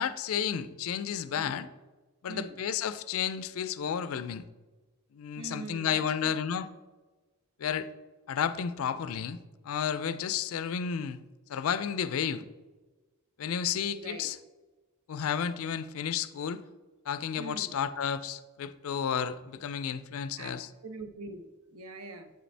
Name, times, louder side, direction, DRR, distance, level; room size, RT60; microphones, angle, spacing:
voice 1, 0.0-1.7 2.2-4.4 5.1-6.7 7.6-7.9 8.3-9.4 9.6-11.2 11.5-12.4 13.4-14.4 15.1-16.6 17.1-20.7, left 8 dB, 70° left, 14 dB, 0.4 m, -32 dB
voice 2, 2.3-2.6 5.4-6.3 13.9-14.3 17.4-17.7 20.4-22.3, right 3 dB, 70° right, 8 dB, 0.7 m, -43 dB
7.8 x 5.1 x 3.3 m, 1.2 s
head